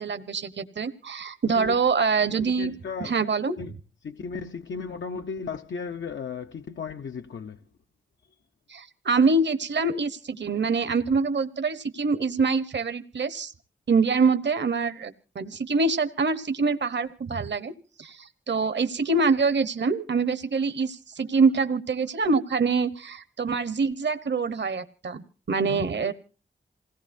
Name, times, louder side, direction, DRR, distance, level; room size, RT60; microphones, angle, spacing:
voice 1, 0.0-2.7 3.0-3.5 8.7-13.5 13.9-17.7 18.0-25.2 25.5-26.1, right 4 dB, 65° right, 1.0 m, -25 dB
voice 2, 2.4-3.1 3.6-3.7 4.0-7.6 25.7-26.1, left 5 dB, 75° left, 0.7 m, -35 dB
27.5 x 17.5 x 2.6 m
cardioid pair, 45°, 20 cm